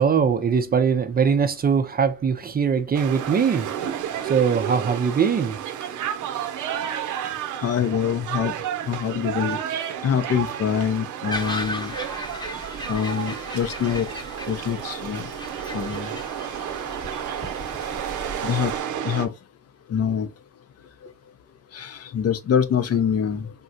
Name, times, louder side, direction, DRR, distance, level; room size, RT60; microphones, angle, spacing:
voice 1, 0.0-3.7 4.2-5.6, right 6 dB, 30° right, 0.4 m, -21 dB
sound 1, 2.9-19.3, right 9 dB, 80° right, 0.6 m, -31 dB
voice 2, 7.6-8.5 8.9-9.6 10.0-11.9 12.9-14.1 14.5-15.3 15.7-16.1 18.4-18.7 19.0-19.3 19.9-20.3 21.7-23.5, left 8 dB, 55° left, 0.6 m, -24 dB
sound 2, 11.3-18.8, left 1 dB, 15° left, 0.9 m, -36 dB
3.7 x 2.0 x 2.6 m
cardioid pair, 90°, 30 cm